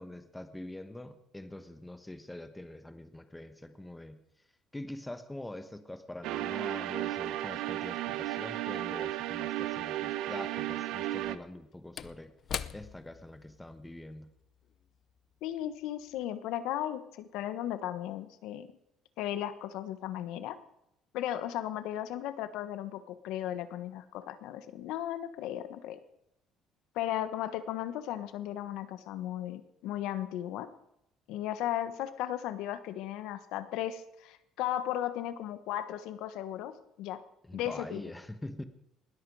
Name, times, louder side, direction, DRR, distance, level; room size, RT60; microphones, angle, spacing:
voice 1, 0.0-4.2 4.7-12.3 12.7-14.3 37.4-38.7, left 1 dB, 5° left, 9 dB, 1.1 m, -44 dB
sound 1, 6.2-11.4, right 14 dB, 80° right, 0.8 m, -34 dB
Slam / Wood, 9.5-9.6 11.1-15.8 16.1-16.2, left 9 dB, 45° left, 0.6 m, -44 dB
voice 2, 15.4-18.7 19.2-20.6 21.1-26.0 26.9-30.7 31.3-37.2 37.5-38.0, left 12 dB, 80° left, 11 dB, 1.3 m, -36 dB
20.0 x 13.5 x 4.8 m, 0.81 s
cardioid pair, 150°, 0 cm